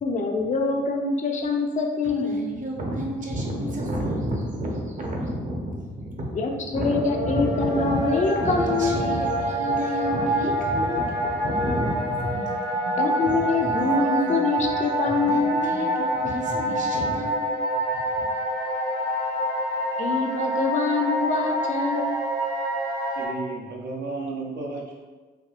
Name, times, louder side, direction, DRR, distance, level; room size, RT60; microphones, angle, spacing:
voice 1, 0.0-2.4 6.3-9.0 13.0-15.6 20.0-22.2, left 4 dB, 40° left, 2 dB, 0.5 m, -25 dB
voice 2, 2.0-12.6 14.6-14.7 15.3-17.5 17.9-18.2, right 1 dB, 40° right, -1 dB, 0.8 m, -30 dB
sound 1, 6.8-23.3, right 1 dB, 90° right, 1.5 m, -27 dB
sound 2, 11.6-14.8 15.0-16.0 16.5-16.9, right 1 dB, 20° right, 0.5 m, -40 dB
voice 3, 23.2-24.9, right 3 dB, 70° right, -2 dB, 0.8 m, -33 dB
3.5 x 2.6 x 2.4 m, 1.3 s
cardioid pair, 80°, 19 cm